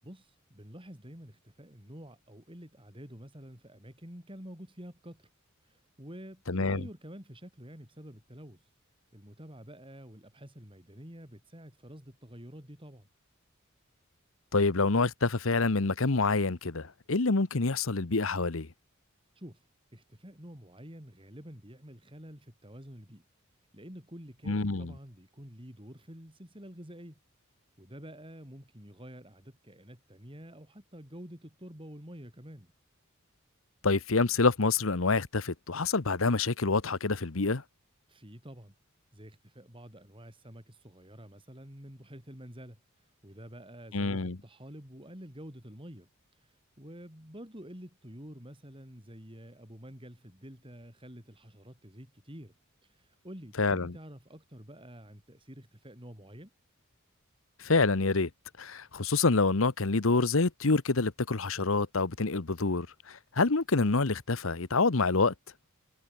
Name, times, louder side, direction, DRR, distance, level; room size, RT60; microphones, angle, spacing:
voice 1, 0.0-5.3 5.6-8.7 9.1-13.1 19.4-19.7 19.9-23.2 23.7-27.2 27.8-32.7 38.1-38.7 39.1-46.1 46.4-52.5 52.8-56.5, equal, 25° right, 7.2 m, -48 dB
voice 2, 6.5-6.8 14.5-18.7 24.5-24.9 33.8-37.6 43.9-44.4 53.6-53.9 57.6-58.3 58.6-65.3, left 3 dB, 70° left, 1.1 m, -27 dB
head